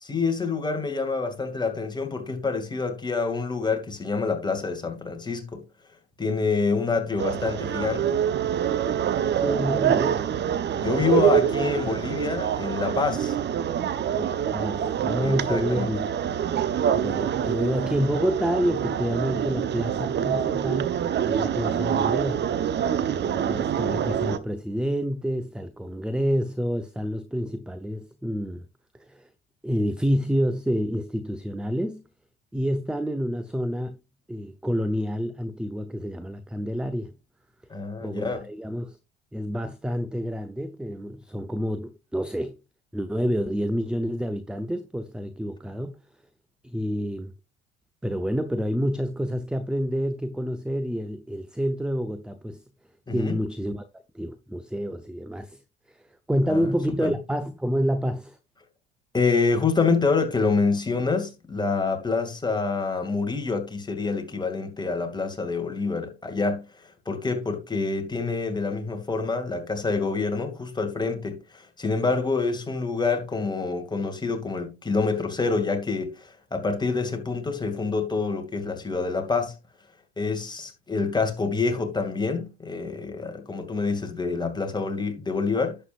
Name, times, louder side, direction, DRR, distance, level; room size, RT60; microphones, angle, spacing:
voice 1, 0.0-5.6 6.2-8.2 10.8-13.4 15.2-15.9 37.7-38.4 53.1-53.4 56.5-56.7 57.0-57.1 59.1-66.7 67.1-79.6 80.2-85.8, left 4 dB, 15° left, 2.4 m, -27 dB
sound 1, 7.2-24.4, right 9 dB, 35° right, 0.9 m, -26 dB
voice 2, 9.4-10.2 14.1-16.0 16.9-21.0 21.3-22.5 23.0-28.7 29.0-29.3 29.6-32.0 32.5-34.0 34.3-37.1 38.0-39.0 39.3-42.6 42.9-46.0 46.6-47.3 48.0-52.6 53.1-53.8 54.1-55.6 55.9-58.4, equal, 5° right, 0.7 m, -28 dB
11.0 x 7.7 x 2.5 m
hypercardioid pair, 80°, 31 cm